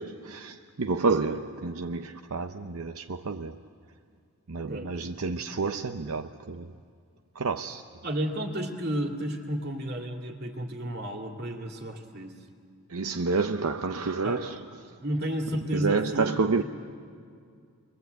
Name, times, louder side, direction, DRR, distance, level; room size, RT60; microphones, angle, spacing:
voice 1, 0.0-3.6 4.5-6.7 7.4-7.8 12.9-14.6 15.7-16.6, right 4 dB, 75° right, 0.7 m, -29 dB
voice 2, 4.7-5.1 5.5-5.6 8.0-12.3 14.2-14.5 15.0-16.6, equal, 45° right, 2.5 m, -32 dB
29.0 x 22.5 x 8.1 m
head